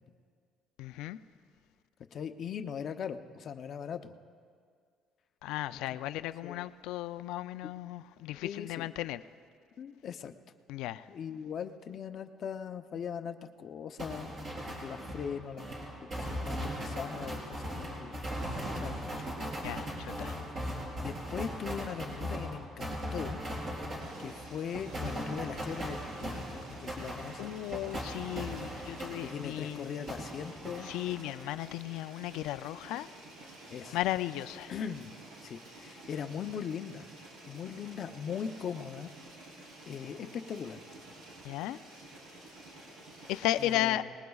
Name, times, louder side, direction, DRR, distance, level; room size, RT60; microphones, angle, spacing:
voice 1, 0.8-1.2 5.4-9.2 10.7-11.1 19.6-20.4 27.4-29.9 30.8-33.1 33.9-34.7 41.4-41.8 43.3-44.0, left 14 dB, 90° left, 0.4 m, -35 dB
voice 2, 2.1-4.1 5.7-6.0 6.4-6.7 8.4-8.9 9.8-10.3 11.1-14.3 14.8-15.7 16.1-18.3 18.6-19.2 21.0-23.4 24.2-27.5 29.2-30.9 33.7-34.0 34.7-35.2 35.4-37.1 37.5-39.1 39.9-40.8 43.6-44.0, left 7 dB, 45° left, 0.7 m, -40 dB
sound 1, 14.0-29.7 30.1-31.4, equal, 40° right, 3.7 m, -39 dB
sound 2, 24.0-43.8, right 2 dB, 80° right, 5.1 m, -51 dB
26.0 x 20.0 x 2.4 m
cardioid pair, 145°, 0 cm